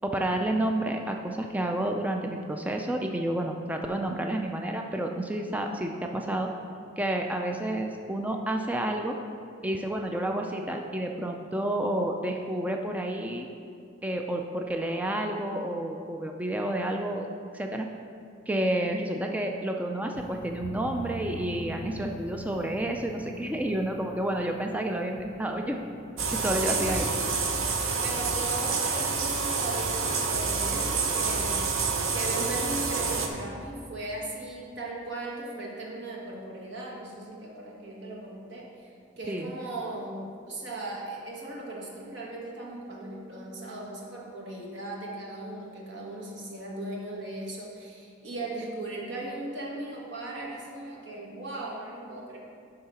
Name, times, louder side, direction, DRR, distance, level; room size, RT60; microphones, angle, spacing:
voice 1, 0.0-6.5 7.0-9.1 9.6-13.5 14.0-17.3 17.5-17.9 18.5-25.8 26.3-27.0 39.3-39.5, right 1 dB, 5° right, 2 dB, 0.3 m, -30 dB
sound 1, 20.1-27.8, equal, 75° left, 0.6 m, -43 dB
sound 2, 26.2-33.3, right 4 dB, 85° right, 0.8 m, -28 dB
voice 2, 26.6-27.1 28.0-40.2 40.5-52.4, right 2 dB, 60° right, -3 dB, 1.4 m, -37 dB
10.5 x 3.8 x 5.6 m, 2.5 s
head